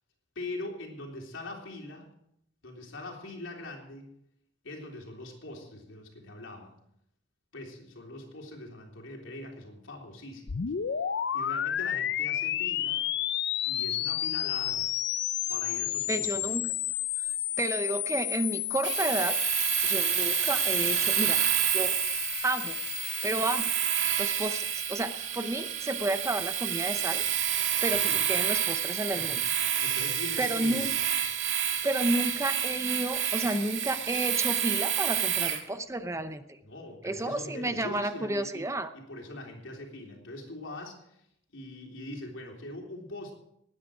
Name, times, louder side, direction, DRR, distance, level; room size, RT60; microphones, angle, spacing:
voice 1, 0.4-2.1 2.6-4.1 4.6-6.7 7.5-10.7 11.3-13.1 13.7-14.9 15.5-16.5 27.9-28.3 29.1-30.9 36.6-38.6 38.9-41.3 41.5-43.3, left 2 dB, 85° left, 1 dB, 3.5 m, -42 dB
sound 1, 10.5-23.8, left 12 dB, 60° left, 0.5 m, -32 dB
voice 2, 16.1-16.6 17.2-17.3 17.6-19.4 19.8-21.4 21.7-22.0 22.4-22.8 23.2-23.7 24.2-27.2 27.8-29.4 30.4-30.9 31.8-36.6 37.0-38.9, right 1 dB, 15° right, 10 dB, 0.7 m, -31 dB
Domestic sounds home sounds, 18.8-35.6, right 10 dB, 90° right, 1.8 m, -29 dB
19.5 x 9.6 x 5.0 m, 0.76 s
head